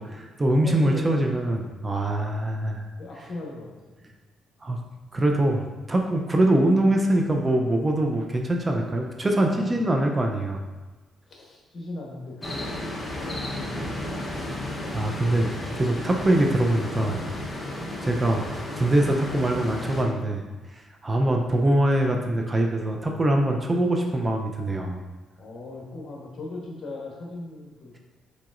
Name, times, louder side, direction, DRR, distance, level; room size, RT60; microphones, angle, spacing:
voice 1, 0.0-2.8 4.6-4.8 5.1-10.6 14.4-14.5 14.9-17.3 18.0-20.4 21.0-25.0, right 1 dB, 25° right, 2 dB, 0.5 m, -23 dB
voice 2, 0.6-1.3 1.7-1.8 3.0-3.7 4.0-4.2 9.5-10.2 11.3-14.2 15.2-15.8 25.4-28.0, left 2 dB, 55° left, -2 dB, 1.1 m, -39 dB
sound 1, 12.4-20.0, left 1 dB, 20° left, 0.9 m, -33 dB
4.7 x 4.0 x 2.5 m, 1.2 s
cardioid pair, 90°, 0 cm